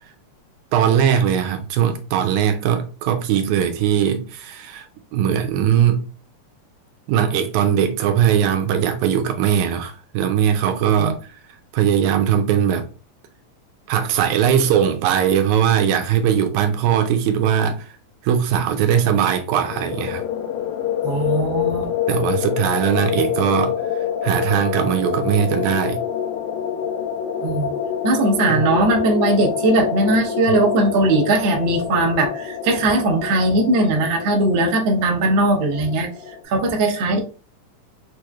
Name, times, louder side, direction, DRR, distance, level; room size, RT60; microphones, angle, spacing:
voice 1, 0.7-4.9 5.1-6.1 7.1-11.4 11.7-12.9 13.9-18.0 18.2-20.2 22.1-23.8 24.2-26.0 28.5-28.6, right 9 dB, 80° right, 1.9 m, -20 dB
sound 1, 19.5-36.4, left 8 dB, 85° left, 2.1 m, -26 dB
voice 2, 21.0-21.9 27.4-27.7 28.0-36.1 36.4-37.2, right 2 dB, 65° right, 1.2 m, -19 dB
6.6 x 3.1 x 2.3 m
omnidirectional pair, 3.5 m